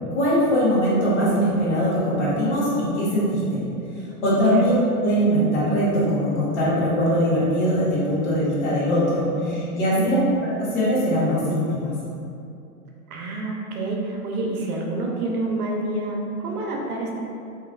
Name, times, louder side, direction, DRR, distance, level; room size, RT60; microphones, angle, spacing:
voice 1, 0.1-3.6 4.2-4.7 5.0-10.2 10.4-12.0, equal, 50° left, -7 dB, 1.2 m, -21 dB
voice 2, 4.3-4.6 9.9-10.3 13.1-17.2, right 2 dB, 70° right, -1 dB, 0.8 m, -28 dB
3.6 x 3.1 x 2.4 m, 2.6 s
hypercardioid pair, 155°, 45 cm